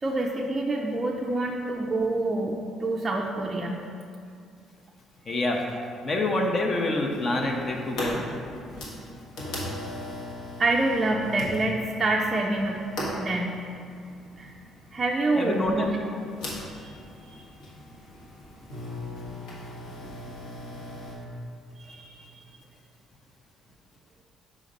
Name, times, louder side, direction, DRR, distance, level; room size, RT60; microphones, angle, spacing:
voice 1, 0.0-3.9 10.6-12.8 13.2-13.6 14.4-14.5 14.9-16.0 16.8-16.9 21.8-22.2, right 2 dB, 20° right, -1 dB, 0.4 m, -27 dB
voice 2, 5.3-5.7 6.0-8.3 15.4-15.9, left 2 dB, 35° left, 1 dB, 0.6 m, -26 dB
sound 1, 7.1-21.1, left 1 dB, 80° left, 1.3 m, -38 dB
5.1 x 3.8 x 5.2 m, 2.4 s
cardioid pair, 125°, 0 cm